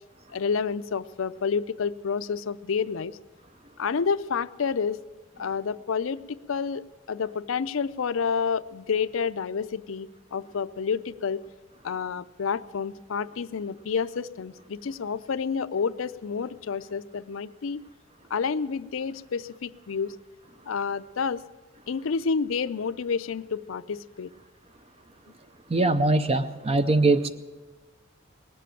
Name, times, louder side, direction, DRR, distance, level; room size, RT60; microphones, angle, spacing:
voice 1, 0.3-3.2 3.8-5.0 5.4-11.4 11.8-17.8 18.3-20.2 20.7-21.4 21.9-24.3 27.1-27.2, left 5 dB, 75° left, 0.5 m, -29 dB
voice 2, 25.7-27.3, right 2 dB, 30° right, 0.5 m, -22 dB
19.5 x 7.7 x 9.0 m
head